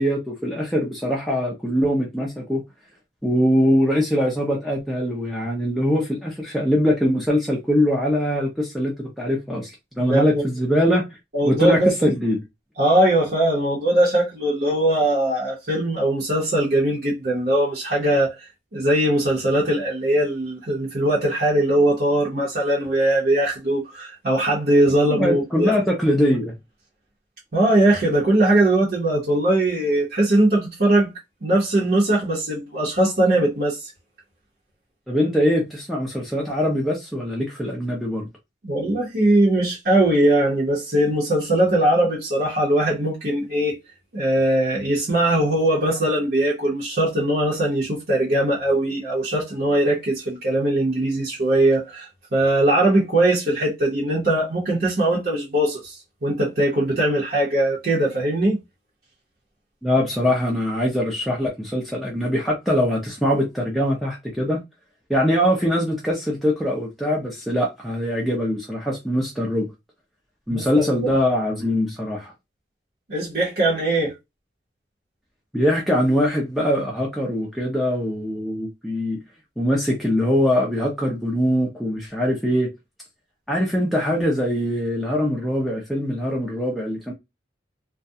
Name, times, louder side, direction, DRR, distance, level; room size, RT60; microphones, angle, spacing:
voice 1, 0.0-2.6 3.2-9.7 10.0-11.2 11.4-12.4 25.1-26.5 35.1-38.3 59.8-64.6 65.1-69.7 70.5-72.3 75.5-79.2 79.6-82.7 83.5-87.1, equal, ahead, 0.4 m, -22 dB
voice 2, 10.0-10.4 11.3-12.1 12.8-25.8 27.5-31.1 31.4-33.8 38.6-43.8 44.1-58.6 70.5-71.1 73.1-74.1, right 1 dB, 55° right, 0.8 m, -20 dB
2.3 x 2.1 x 2.6 m
head